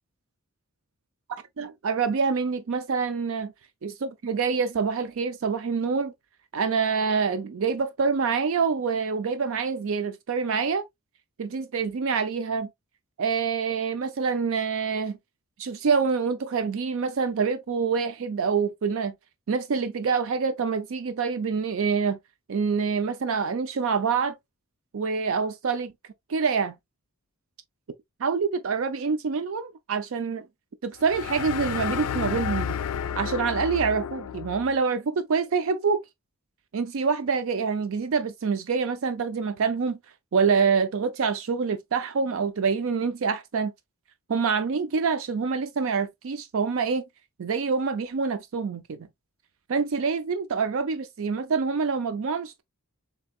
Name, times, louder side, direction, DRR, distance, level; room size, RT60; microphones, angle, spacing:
voice 1, 1.6-3.5 4.2-6.1 6.5-10.8 11.4-12.7 13.2-15.2 15.6-19.1 19.5-22.2 22.5-24.4 24.9-25.9 26.3-26.7 28.2-30.4 30.8-32.8 33.2-36.0 36.7-40.0 40.3-43.7 44.3-47.0 47.4-49.1 49.7-52.6, right 5 dB, 60° right, 0.4 m, -26 dB
sound 1, 31.0-34.7, left 8 dB, 85° left, 0.4 m, -31 dB
7.0 x 2.8 x 2.3 m
head